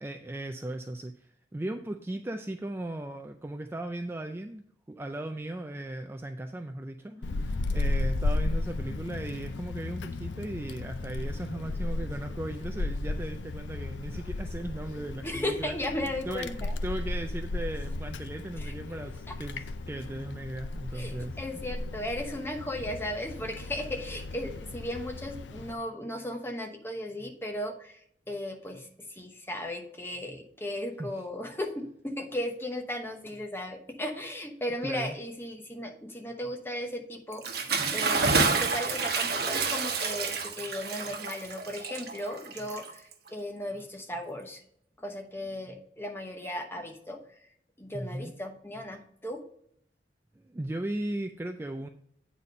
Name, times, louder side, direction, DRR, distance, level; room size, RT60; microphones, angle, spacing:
voice 1, 0.0-4.6 4.9-15.7 16.3-21.4 31.0-31.1 34.8-35.2 47.9-48.3 50.4-51.9, right 1 dB, 15° right, 6 dB, 0.3 m, -37 dB
Wind, 7.2-25.7, left 2 dB, 85° left, 0.5 m, -34 dB
voice 2, 15.2-16.8 18.6-18.7 19.3-19.4 20.9-44.6 45.0-49.4, left 1 dB, 15° left, 3 dB, 0.9 m, -36 dB
Bathtub (filling or washing) / Splash splatter, 37.3-43.3, right 4 dB, 60° right, 1.0 m, -29 dB
8.7 x 4.2 x 5.1 m, 0.69 s
head